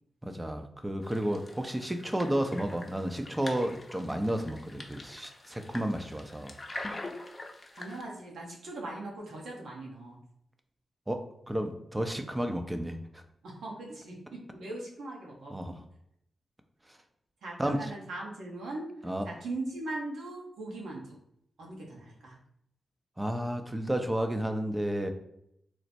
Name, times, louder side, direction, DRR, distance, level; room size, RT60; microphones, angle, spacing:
voice 1, 0.2-6.6 11.1-13.2 15.5-15.8 17.6-17.9 19.0-19.3 23.2-25.1, right 1 dB, 20° right, 6 dB, 0.5 m, -32 dB
sound 1, 1.0-8.0, left 2 dB, 35° left, 0.6 m, -44 dB
voice 2, 7.7-10.2 13.4-15.7 17.4-18.9 19.2-21.2 21.6-22.4, right 2 dB, 80° right, -2 dB, 1.0 m, -40 dB
3.1 x 2.1 x 4.2 m, 0.75 s
supercardioid pair, 40°, 0 cm